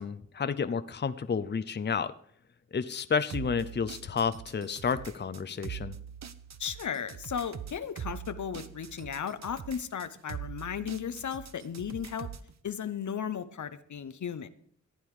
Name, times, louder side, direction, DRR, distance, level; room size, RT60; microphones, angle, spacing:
voice 1, 0.0-2.1 2.7-5.9, left 6 dB, 35° left, 12 dB, 0.6 m, -31 dB
sound 1, 3.3-12.5, right 8 dB, 60° right, 0.9 m, -43 dB
voice 2, 6.6-12.3 12.6-14.5, left 8 dB, 70° left, 12 dB, 0.8 m, -35 dB
14.5 x 9.1 x 4.9 m, 0.62 s
cardioid pair, 65°, 31 cm